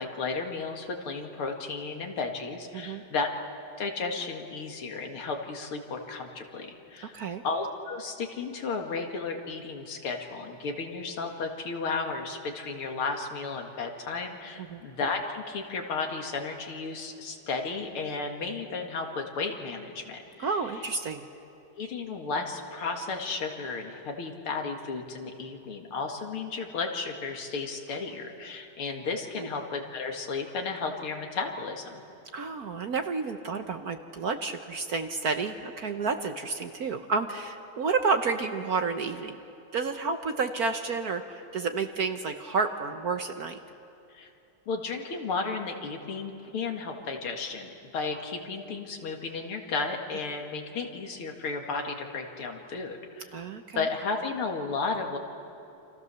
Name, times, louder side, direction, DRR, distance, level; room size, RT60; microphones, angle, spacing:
voice 1, 0.0-3.3 3.8-20.6 21.8-32.0 44.1-44.3 44.7-53.4 53.7-55.2, left 4 dB, 75° left, 3 dB, 2.9 m, -33 dB
voice 2, 7.0-7.4 14.7-14.8 20.4-21.2 29.4-29.5 32.3-39.4 39.7-43.6 53.3-53.8, right 4 dB, 55° right, 7 dB, 1.2 m, -30 dB
29.0 x 27.0 x 7.0 m, 2.8 s
omnidirectional pair, 2.4 m